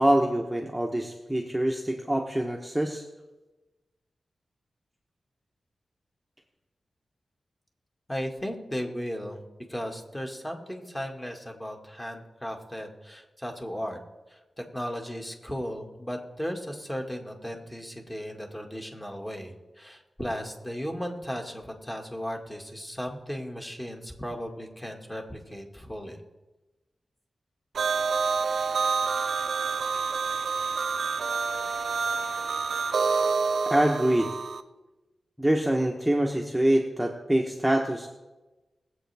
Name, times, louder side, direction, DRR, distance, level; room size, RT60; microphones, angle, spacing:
voice 1, 0.0-3.0 33.7-34.3 35.4-38.1, right 1 dB, 5° right, 1 dB, 1.1 m, -25 dB
voice 2, 8.1-9.4 9.7-14.0 14.3-26.2, equal, 15° left, 1 dB, 2.0 m, -36 dB
sound 1, 27.7-34.6, right 5 dB, 90° right, 0.6 m, -28 dB
21.0 x 8.0 x 3.5 m, 1.1 s
wide cardioid pair, 70°, 0 cm